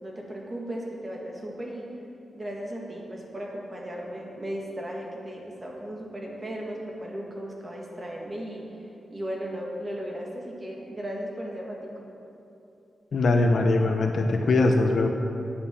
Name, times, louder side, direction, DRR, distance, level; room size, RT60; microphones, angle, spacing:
voice 1, 0.0-1.9 2.3-8.6 9.1-12.1, equal, 25° right, -2 dB, 1.9 m, -36 dB
voice 2, 13.1-15.1, left 2 dB, 55° left, 4 dB, 0.9 m, -21 dB
9.2 x 8.7 x 7.1 m, 2.8 s
wide cardioid pair, 145°, 0 cm